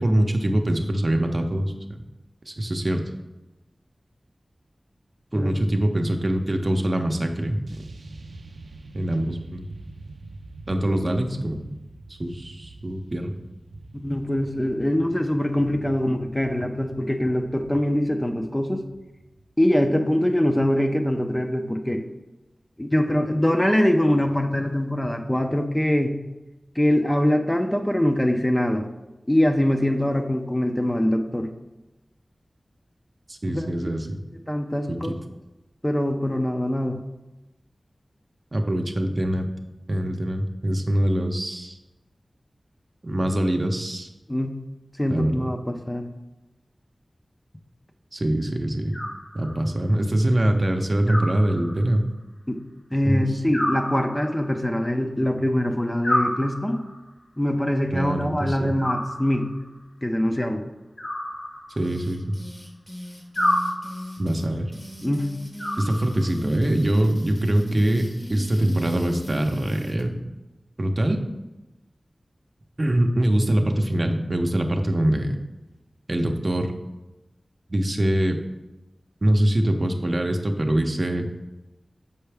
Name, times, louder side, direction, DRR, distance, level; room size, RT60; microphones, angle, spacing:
voice 1, 0.0-1.7 2.5-3.0 5.3-7.8 8.9-9.6 10.7-11.6 12.2-13.3 33.3-34.2 34.9-35.1 38.5-39.5 39.9-41.8 43.0-44.1 45.1-45.5 48.1-48.9 49.3-52.1 53.0-53.2 57.9-58.7 61.8-62.4 64.2-64.7 65.8-70.2 70.8-71.2 72.8-75.4 76.1-76.7 77.7-78.4 79.2-81.3, right 1 dB, 45° right, 4 dB, 0.7 m, -23 dB
sound 1, 5.9-6.8 7.7-21.3, right 2 dB, 85° right, 0.4 m, -45 dB
voice 2, 13.9-18.8 19.6-22.0 22.8-26.1 26.8-28.9 29.3-31.5 33.5-33.9 34.5-35.1 35.8-37.0 44.3-44.6 45.0-46.1 52.5-52.6 52.9-56.8 57.4-59.5 60.0-60.6 65.0-65.3, left 1 dB, 15° left, 4 dB, 0.6 m, -23 dB
Animal, 48.9-49.8 51.1-52.1 53.5-54.6 56.0-57.0 58.8-59.7 61.0-62.1 63.4-64.3 65.6-66.5, left 1 dB, 80° left, 2.0 m, -29 dB
sound 2, 61.8-70.1, equal, 30° left, 1.0 m, -40 dB
6.7 x 5.5 x 3.4 m, 1.0 s
wide cardioid pair, 60°, 0 cm